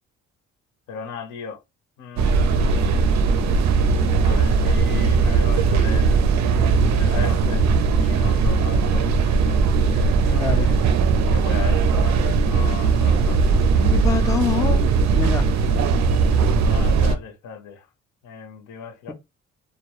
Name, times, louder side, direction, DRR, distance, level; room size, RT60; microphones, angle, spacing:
voice 1, 0.9-1.6 2.0-3.1 4.2-6.2 7.0-7.7 8.0-10.8 11.3-13.9 16.6-17.9 18.2-19.1, left 6 dB, 80° left, 0.7 m, -37 dB
sound 1, 2.2-17.2, right 4 dB, 65° right, 0.5 m, -19 dB
voice 2, 10.3-10.7 13.8-14.8 15.1-15.5, left 6 dB, 10° left, 0.3 m, -25 dB
2.1 x 2.0 x 2.8 m
cardioid pair, 90°, 30 cm